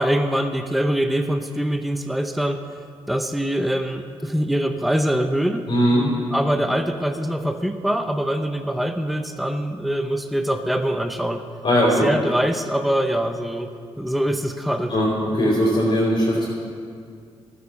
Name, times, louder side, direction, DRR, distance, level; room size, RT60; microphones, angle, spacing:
voice 1, 0.0-2.6 3.1-5.7 6.3-11.4 12.0-13.7 14.0-14.9, right 1 dB, ahead, 8 dB, 0.6 m, -23 dB
voice 2, 5.7-6.0 11.6-12.0 14.9-15.1 15.3-16.5, equal, 55° left, -7 dB, 3.3 m, -19 dB
12.5 x 6.8 x 7.0 m, 2.3 s
cardioid pair, 80°, 11 cm